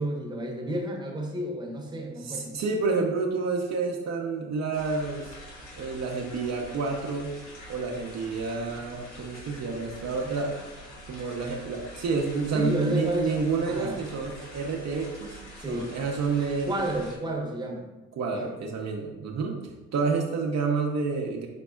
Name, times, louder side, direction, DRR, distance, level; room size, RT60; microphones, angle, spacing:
voice 1, 0.0-2.6 12.5-14.0 15.6-15.9 16.6-17.9 18.3-18.5, right 1 dB, 15° right, -1 dB, 0.9 m, -31 dB
voice 2, 2.2-5.4 5.8-7.3 7.7-10.5 11.1-15.4 15.7-16.7 18.1-19.6 19.9-21.5, right 4 dB, 60° right, 1 dB, 0.7 m, -29 dB
sound 1, 4.7-17.2, equal, 85° left, 1.3 m, -45 dB
5.1 x 4.1 x 2.3 m, 1.1 s
cardioid pair, 90°, 30 cm